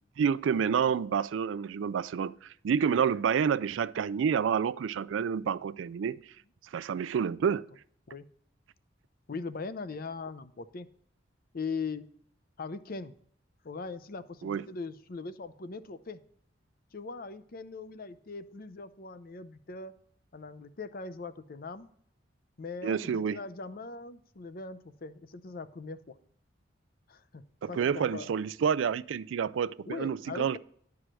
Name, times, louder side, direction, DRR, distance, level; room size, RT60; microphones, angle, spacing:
voice 1, 0.2-6.2 6.7-7.7 14.4-14.6 22.8-23.4 27.6-30.6, right 7 dB, 85° right, 0.3 m, -29 dB
voice 2, 9.3-10.9 11.5-12.1 12.6-13.1 13.6-16.2 16.9-19.9 20.3-21.9 22.6-26.2 27.1-28.3 29.9-30.6, left 4 dB, 50° left, 0.6 m, -40 dB
11.5 x 4.8 x 6.1 m
head